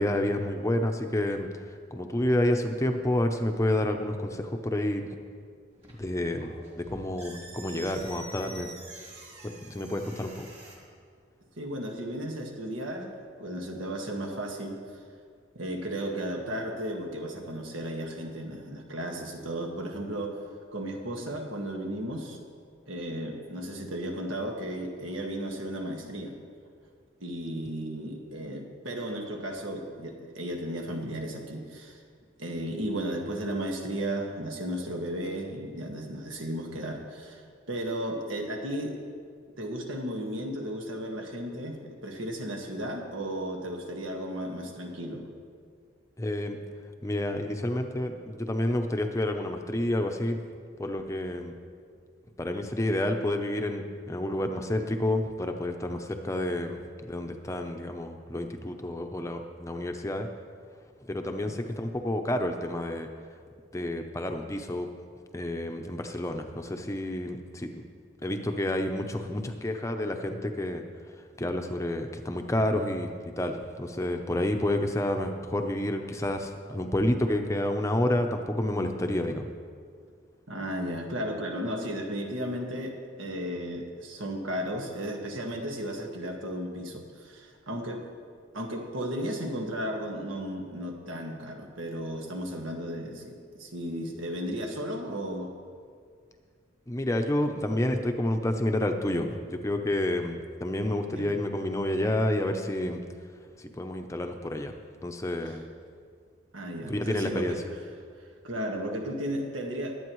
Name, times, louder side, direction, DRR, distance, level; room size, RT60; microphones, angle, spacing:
voice 1, 0.0-5.1 6.0-6.5 6.8-8.7 9.4-10.5 46.2-46.6 47.0-50.4 50.8-51.5 52.4-56.8 57.1-60.3 61.0-63.1 63.7-64.9 65.3-67.8 68.2-70.8 71.2-79.5 96.9-103.0 103.6-104.7 105.0-105.6 106.9-107.6, left 1 dB, 15° left, 5 dB, 0.6 m, -29 dB
sound 1, 5.7-10.8, right 2 dB, 30° right, 2.4 m, -47 dB
voice 2, 11.6-13.1 13.4-14.8 15.5-20.4 20.7-22.4 22.9-26.3 27.2-32.0 32.4-37.4 37.7-39.0 39.6-45.3 61.5-61.7 80.5-88.1 88.5-95.5 101.1-101.3 106.5-107.6 108.4-109.9, equal, 90° right, 1 dB, 1.7 m, -34 dB
21.5 x 8.7 x 3.1 m, 2.1 s
head